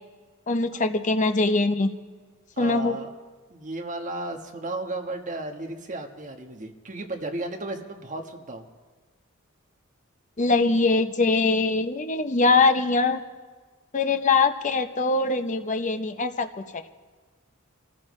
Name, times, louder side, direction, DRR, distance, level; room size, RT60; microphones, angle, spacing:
voice 1, 0.5-1.9 2.6-3.0 10.4-13.2 13.9-16.5, left 3 dB, 35° left, 7 dB, 0.8 m, -22 dB
voice 2, 2.6-3.1 3.5-8.6, right 2 dB, 40° right, 3 dB, 1.4 m, -34 dB
25.5 x 14.5 x 3.2 m, 1.4 s
head